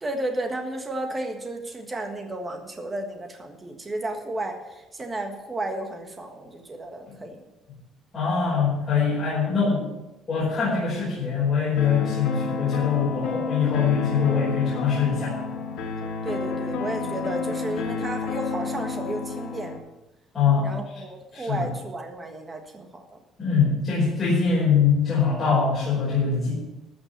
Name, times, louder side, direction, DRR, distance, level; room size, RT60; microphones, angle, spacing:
voice 1, 0.0-7.4 16.2-19.7 20.6-23.2, right 1 dB, 15° right, 4 dB, 1.6 m, -33 dB
voice 2, 8.1-9.9 10.3-15.3 20.3-20.7 21.3-21.7 23.4-26.5, left 6 dB, 25° left, -9 dB, 5.3 m, -23 dB
sound 1, 11.8-19.8, left 4 dB, 90° left, 2.1 m, -30 dB
14.0 x 6.0 x 8.0 m, 0.99 s
cardioid pair, 175°, 0 cm